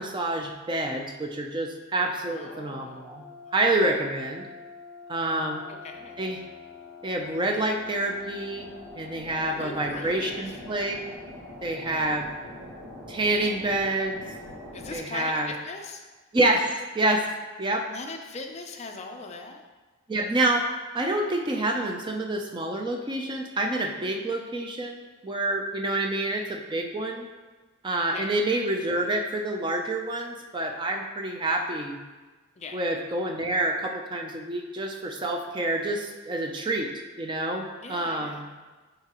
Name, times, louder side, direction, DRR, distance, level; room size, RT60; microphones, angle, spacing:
voice 1, 0.0-3.2 3.5-4.5 5.1-5.6 6.2-6.4 7.0-10.9 11.6-12.3 13.1-14.2 14.9-15.5 16.3-17.3 17.6-17.9 20.1-27.3 27.8-32.0 32.7-36.9 37.2-38.5, right 2 dB, 20° right, 3 dB, 0.4 m, -27 dB
voice 2, 2.2-3.5 5.7-6.3 9.5-10.6 14.7-16.1 17.9-19.6 28.1-28.3 32.6-32.8 37.8-38.4, left 3 dB, 30° left, 3 dB, 0.5 m, -40 dB
sound 1, 2.5-15.0, left 2 dB, 80° right, 1.8 m, -44 dB
10.5 x 3.9 x 3.0 m, 1.3 s
head